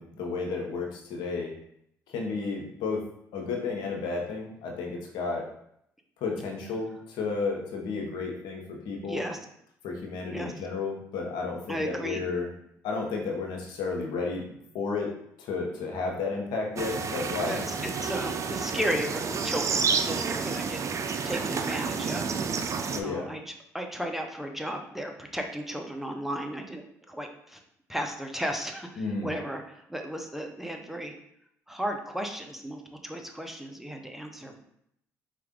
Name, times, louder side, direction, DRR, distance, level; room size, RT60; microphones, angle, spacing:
voice 1, 0.0-1.5 2.1-3.1 3.3-5.5 6.2-9.2 9.8-12.5 12.8-14.5 14.7-15.1 15.4-17.7 22.8-23.3 29.0-29.3, left 4 dB, 75° left, 1 dB, 0.8 m, -32 dB
voice 2, 9.0-9.4 10.3-10.5 11.7-12.2 17.5-20.8 21.2-22.5 23.0-23.4 23.7-26.8 27.1-27.6 27.9-31.1 31.7-34.6, equal, 5° right, 3 dB, 0.7 m, -34 dB
sound 1, 16.8-23.0, right 5 dB, 45° right, 0.4 m, -30 dB
4.4 x 2.5 x 3.6 m, 0.73 s
supercardioid pair, 60°, 7 cm